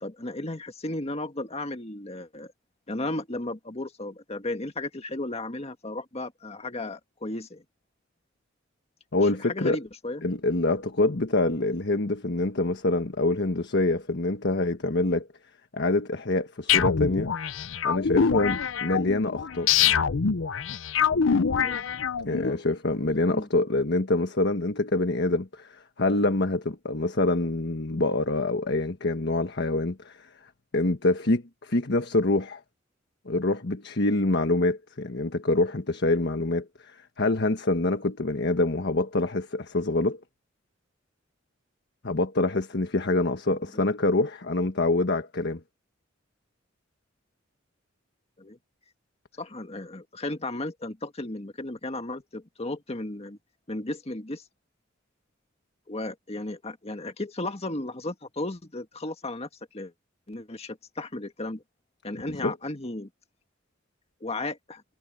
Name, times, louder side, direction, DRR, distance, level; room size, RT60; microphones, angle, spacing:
voice 1, 0.0-2.5 2.9-7.6 9.2-10.2 21.5-21.8 22.4-22.6 23.3-23.5 43.7-43.9 48.4-48.6 49.4-53.4 53.7-54.4 55.9-59.5 59.7-59.9 60.3-61.6 62.0-63.1 64.2-64.8, left 2 dB, 35° left, 1.8 m, -34 dB
voice 2, 9.1-9.8 10.2-15.3 15.7-17.3 17.8-19.7 22.2-30.3 30.7-32.6 33.2-40.2 42.0-45.6 62.3-62.5, left 2 dB, 60° left, 1.4 m, -26 dB
sound 1, 16.7-22.5, left 7 dB, 85° left, 0.7 m, -25 dB
head